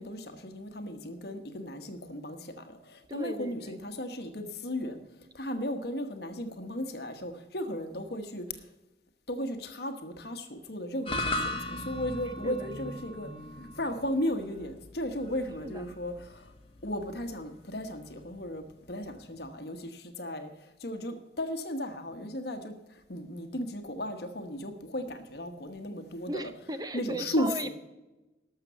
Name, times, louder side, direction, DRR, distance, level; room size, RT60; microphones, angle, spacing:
voice 1, 0.0-5.0 5.3-8.4 9.3-13.3 13.6-16.5 16.8-22.7 23.1-26.4 26.9-27.7, left 1 dB, 60° left, 7 dB, 1.2 m, -35 dB
voice 2, 3.1-3.8 12.4-12.7 15.6-15.8 26.3-27.7, right 1 dB, 20° right, 11 dB, 0.7 m, -37 dB
sound 1, 11.0-19.5, left 1 dB, 30° left, 1.2 m, -39 dB
12.5 x 6.7 x 6.9 m, 1.1 s
head